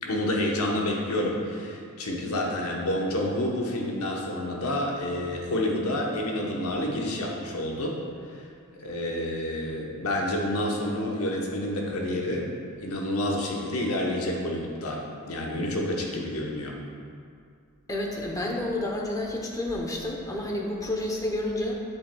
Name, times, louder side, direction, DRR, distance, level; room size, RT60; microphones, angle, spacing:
voice 1, 0.0-8.0 8.3-16.8, left 1 dB, 75° left, -1 dB, 1.0 m, -29 dB
voice 2, 17.9-21.7, left 1 dB, 15° left, -1 dB, 0.8 m, -30 dB
7.8 x 7.4 x 2.3 m, 2.3 s
head